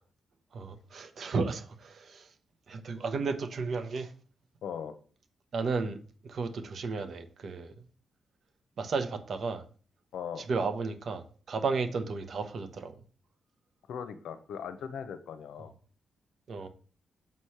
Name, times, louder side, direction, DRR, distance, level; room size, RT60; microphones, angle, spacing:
voice 1, 0.5-2.3 2.7-4.1 5.5-6.0 6.2-7.7 8.8-9.6 10.5-13.0 16.5-16.7, right 4 dB, 60° right, 1.0 m, -33 dB
voice 2, 4.6-5.0 10.1-10.5 13.9-15.7, left 7 dB, 85° left, 0.7 m, -39 dB
7.1 x 3.2 x 5.7 m
cardioid pair, 95°, 0 cm